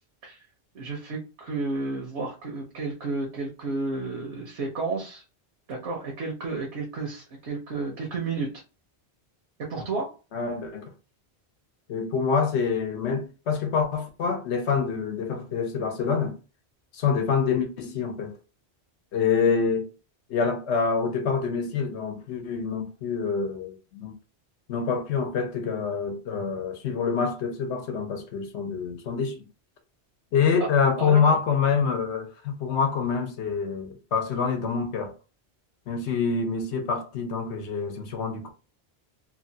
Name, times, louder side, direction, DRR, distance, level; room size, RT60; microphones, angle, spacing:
voice 1, 0.7-5.2 5.7-8.6 9.6-10.1 30.6-30.7 31.0-31.4, right 3 dB, 80° right, 1.0 m, -32 dB
voice 2, 10.3-10.9 11.9-16.4 16.9-18.4 19.1-19.9 20.3-24.2 24.7-29.4 30.3-35.1 35.9-38.5, left 5 dB, 90° left, 1.0 m, -26 dB
2.9 x 2.2 x 2.7 m
omnidirectional pair, 1.1 m